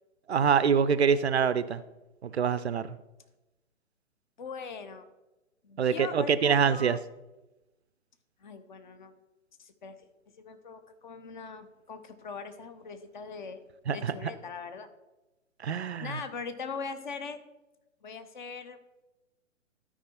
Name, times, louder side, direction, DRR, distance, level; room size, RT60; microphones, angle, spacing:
voice 1, 0.3-1.8 2.2-3.0 5.8-7.0 13.9-14.1 15.6-16.2, right 7 dB, 55° right, 14 dB, 0.5 m, -25 dB
voice 2, 4.4-5.1 5.6-7.0 8.4-9.1 9.6-10.0 10.4-13.6 13.9-14.9 16.0-17.4 18.0-18.8, left 5 dB, 40° left, 10 dB, 0.7 m, -41 dB
12.5 x 4.8 x 4.3 m, 1.0 s
figure-of-eight pair, 125°, 39 cm